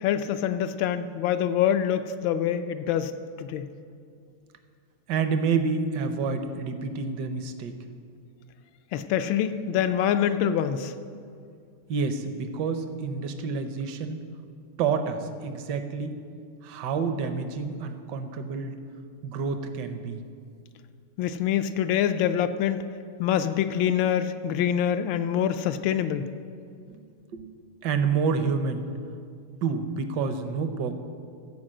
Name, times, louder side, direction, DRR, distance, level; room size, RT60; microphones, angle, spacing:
voice 1, 0.0-3.1 3.4-3.7 8.9-10.9 21.2-22.8 23.2-26.3, left 9 dB, 75° left, 10 dB, 1.2 m, -25 dB
voice 2, 5.1-7.7 11.9-14.2 14.8-16.2 16.6-18.8 19.2-20.2 26.9-27.1 27.3-27.5 27.8-28.9 29.6-30.9, right 5 dB, 65° right, 8 dB, 1.2 m, -28 dB
15.0 x 5.0 x 7.5 m, 2.3 s
omnidirectional pair, 2.4 m